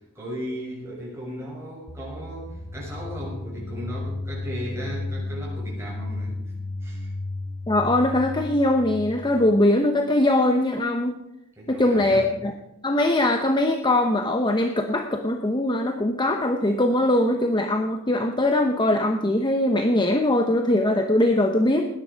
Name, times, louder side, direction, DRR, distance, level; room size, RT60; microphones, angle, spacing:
voice 1, 0.1-6.4 6.8-7.1 11.6-12.3, equal, 15° right, -5 dB, 7.0 m, -36 dB
sound 1, 1.9-9.6, left 2 dB, 55° left, 1.4 m, -33 dB
voice 2, 7.7-11.2 11.7-12.5 12.8-21.9, left 1 dB, 20° left, 5 dB, 0.9 m, -21 dB
19.0 x 10.5 x 5.1 m, 0.86 s
head